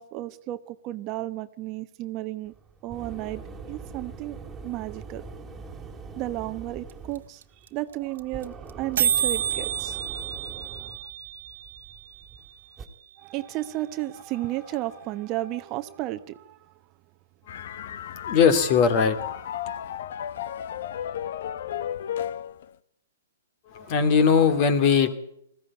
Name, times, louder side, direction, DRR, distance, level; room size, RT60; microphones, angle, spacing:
voice 1, 0.0-2.5 2.8-3.4 3.7-4.4 4.6-5.2 6.2-10.2 10.6-11.0 13.2-16.8 23.8-24.1, right 16 dB, 30° right, 1.0 m, -33 dB
sound 1, 2.4-12.9, right 4 dB, 10° right, 2.7 m, -43 dB
sound 2, 6.9-7.0 7.2-7.3 7.4-7.7 7.9-8.4 8.7-8.8 9.0-12.9, right 9 dB, 70° right, 1.2 m, -29 dB
sound 3, 17.5-22.7, left 10 dB, 60° left, 1.0 m, -34 dB
voice 2, 17.5-19.2 23.7-25.1, left 6 dB, 40° left, 2.7 m, -21 dB
20.0 x 15.0 x 9.8 m
hypercardioid pair, 140°, 0 cm